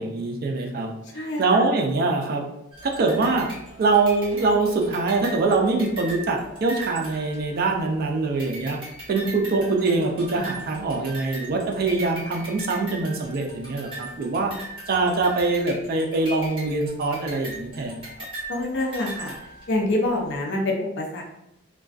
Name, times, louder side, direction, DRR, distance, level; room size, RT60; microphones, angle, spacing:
voice 1, 0.0-2.4 2.8-3.5 3.8-8.8 9.1-14.5 14.9-18.1, right 3 dB, 50° right, 2 dB, 0.4 m, -23 dB
voice 2, 1.1-1.6 18.5-19.4 19.7-21.2, left 1 dB, 60° left, 1 dB, 0.5 m, -26 dB
sound 1, 2.7-8.0 8.4-19.9, right 1 dB, 30° right, 1.2 m, -39 dB
2.4 x 2.2 x 2.3 m, 0.84 s
head